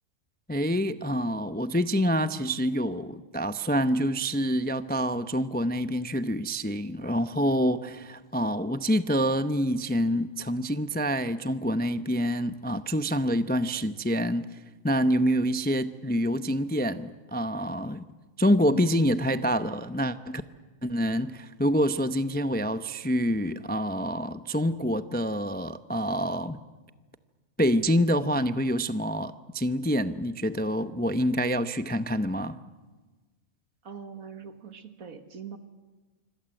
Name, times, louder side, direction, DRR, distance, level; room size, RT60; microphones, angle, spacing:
voice 1, 0.5-14.4 14.8-18.0 18.4-20.4 20.8-26.6 27.6-32.6, equal, 15° left, 11 dB, 0.4 m, -27 dB
voice 2, 33.8-35.6, right 6 dB, 75° right, 8 dB, 2.1 m, -42 dB
26.0 x 25.0 x 7.7 m, 1.3 s
omnidirectional pair, 1.5 m